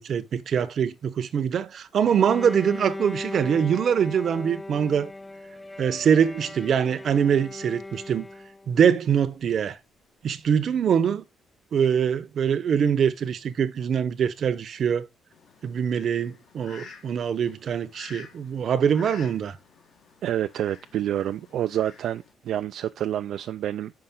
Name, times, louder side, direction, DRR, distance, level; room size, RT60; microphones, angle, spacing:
voice 1, 0.0-5.1 5.8-8.3 8.7-9.8 10.2-11.2 11.7-15.1 15.6-19.6, right 8 dB, 60° right, 0.8 m, -23 dB
Bowed string instrument, 2.0-8.8, left 2 dB, 15° left, 0.4 m, -38 dB
Fowl, 15.3-22.3, left 5 dB, 70° left, 1.9 m, -49 dB
voice 2, 20.2-23.9, right 11 dB, 75° right, 0.4 m, -28 dB
6.4 x 5.8 x 3.7 m
cardioid pair, 90°, 0 cm